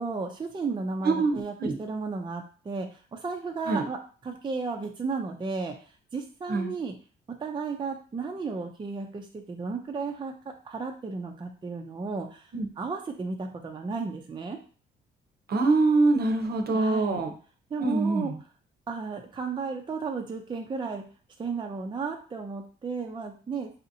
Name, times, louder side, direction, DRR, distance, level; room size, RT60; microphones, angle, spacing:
voice 1, 0.0-5.7 6.1-6.9 7.4-10.3 10.6-14.6 16.7-17.2 17.7-18.3 18.9-21.0 21.4-23.7, right 4 dB, 25° right, 3 dB, 0.5 m, -34 dB
voice 2, 1.0-1.7 3.7-3.8 6.5-6.7 12.5-12.7 15.5-17.3 17.8-18.3, right 3 dB, 50° right, 5 dB, 0.7 m, -24 dB
4.1 x 2.7 x 2.7 m, 0.39 s
cardioid pair, 90°, 20 cm